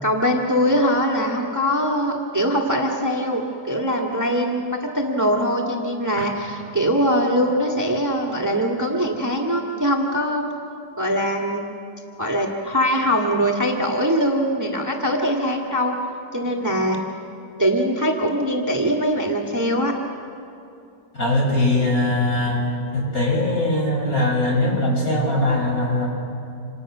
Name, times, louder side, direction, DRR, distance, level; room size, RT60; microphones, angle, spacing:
voice 1, 0.0-10.5 11.0-11.7 12.2-15.9 16.3-17.0 17.6-19.9, equal, 10° right, 0 dB, 1.8 m, -22 dB
voice 2, 21.1-22.6 22.9-26.1, left 1 dB, 55° left, -1 dB, 6.4 m, -21 dB
28.0 x 27.5 x 6.2 m, 2.6 s
omnidirectional pair, 1.8 m